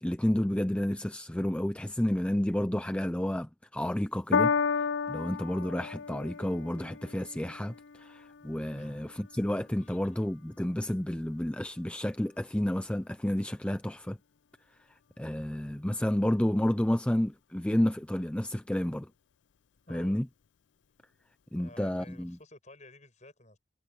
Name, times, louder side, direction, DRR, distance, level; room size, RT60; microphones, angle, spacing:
voice 1, 0.0-14.2 15.2-19.1 19.9-20.3 21.5-22.4, left 1 dB, 5° left, 0.4 m, -30 dB
Piano, 4.3-10.9 11.7-11.8, left 6 dB, 70° left, 0.5 m, -34 dB
voice 2, 19.9-20.2 21.6-23.6, left 2 dB, 35° left, 7.8 m, -52 dB
head